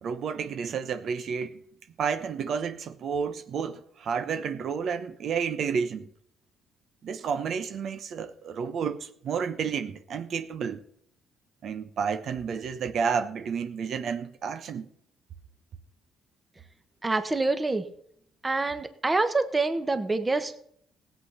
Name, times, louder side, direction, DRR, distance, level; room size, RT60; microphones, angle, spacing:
voice 1, 0.0-1.6 2.0-6.1 7.0-10.8 11.6-14.9, right 6 dB, 60° right, 1.0 m, -31 dB
voice 2, 17.0-17.8 18.4-20.6, right 3 dB, 20° right, 1.2 m, -26 dB
16.5 x 8.3 x 5.7 m
cardioid pair, 110°, 0 cm